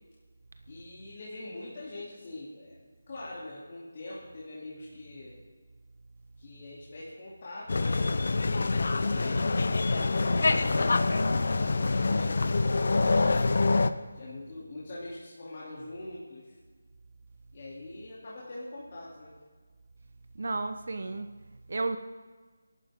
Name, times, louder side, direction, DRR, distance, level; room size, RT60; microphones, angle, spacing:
voice 1, 0.7-5.4 6.4-8.2 8.5-11.1 11.6-13.3 14.1-16.6 17.5-19.3, left 2 dB, 40° left, -7 dB, 2.9 m, -43 dB
sound 1, 7.7-13.9, left 3 dB, 55° left, 0.8 m, -25 dB
voice 2, 20.3-21.3 21.7-22.0, right 3 dB, 60° right, 8 dB, 0.9 m, -32 dB
27.0 x 11.5 x 3.7 m, 1.4 s
figure-of-eight pair, 170°, 0 cm